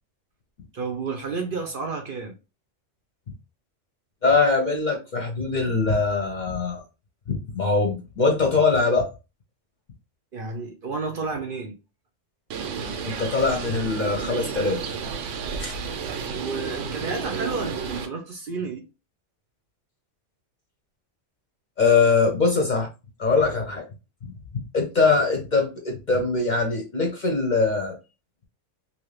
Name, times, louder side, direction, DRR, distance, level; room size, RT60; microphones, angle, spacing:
voice 1, 0.7-2.3 10.3-11.8 16.3-18.8, right 4 dB, 55° right, 0.7 m, -31 dB
voice 2, 4.2-6.8 7.3-9.1 13.0-14.9 15.6-15.7 21.8-22.9 23.2-23.8 24.7-28.0, left 4 dB, 45° left, 0.7 m, -22 dB
Bird, 12.5-18.1, right 5 dB, 80° right, 0.9 m, -32 dB
2.8 x 2.6 x 3.2 m
omnidirectional pair, 1.3 m